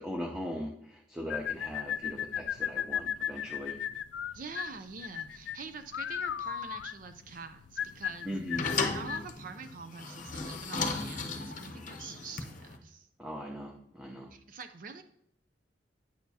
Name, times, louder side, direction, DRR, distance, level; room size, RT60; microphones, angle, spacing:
voice 1, 0.0-3.8 8.2-8.6 13.2-14.3, equal, 5° right, -1 dB, 0.7 m, -39 dB
sound 1, 1.3-9.3, left 9 dB, 75° left, 0.3 m, -36 dB
voice 2, 4.3-8.3 8.9-13.1 14.3-15.0, right 5 dB, 50° right, 9 dB, 0.5 m, -45 dB
sound 2, 7.8-12.8, left 4 dB, 45° left, 0.8 m, -35 dB
9.2 x 6.7 x 2.8 m, 0.71 s
head